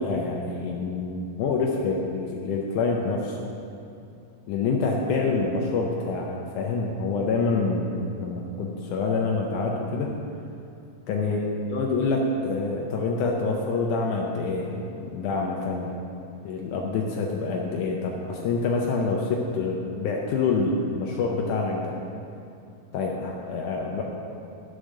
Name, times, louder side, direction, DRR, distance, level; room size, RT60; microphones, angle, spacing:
voice 1, 0.0-3.4 4.5-10.1 11.1-15.9 16.4-21.9 22.9-24.0, left 3 dB, 85° left, -1 dB, 1.7 m, -26 dB
11.5 x 4.9 x 6.4 m, 2.6 s
omnidirectional pair, 4.5 m